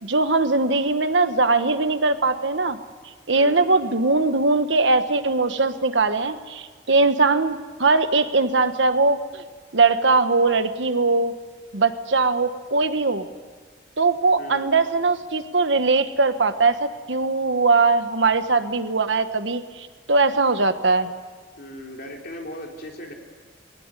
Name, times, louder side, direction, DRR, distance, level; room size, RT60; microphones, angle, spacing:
voice 1, 0.0-2.8 3.3-9.4 9.7-11.3 11.7-13.3 14.0-21.1, right 3 dB, 70° right, 10 dB, 1.3 m, -20 dB
voice 2, 3.3-3.7 14.4-14.7 19.0-19.1 21.6-23.1, equal, 50° left, 1 dB, 3.7 m, -38 dB
21.0 x 18.0 x 9.8 m, 1.5 s
head